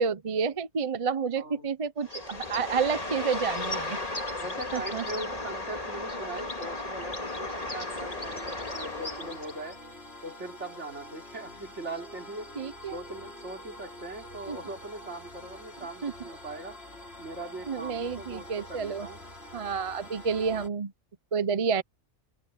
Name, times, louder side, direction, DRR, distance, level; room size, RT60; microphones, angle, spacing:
voice 1, 0.0-4.0 4.7-5.0 12.6-13.0 14.5-14.6 16.0-16.1 17.7-19.1 19.5-20.9 21.3-21.8, right 5 dB, 35° right, 0.7 m, -29 dB
voice 2, 1.4-1.7 4.4-9.8 10.2-16.8 17.2-19.2, right 2 dB, 75° right, 3.8 m, -40 dB
Bird, 2.0-9.7, left 2 dB, 30° left, 2.3 m, -35 dB
sound 1, 5.7-20.7, left 1 dB, 60° left, 4.7 m, -47 dB
omnidirectional pair, 1.2 m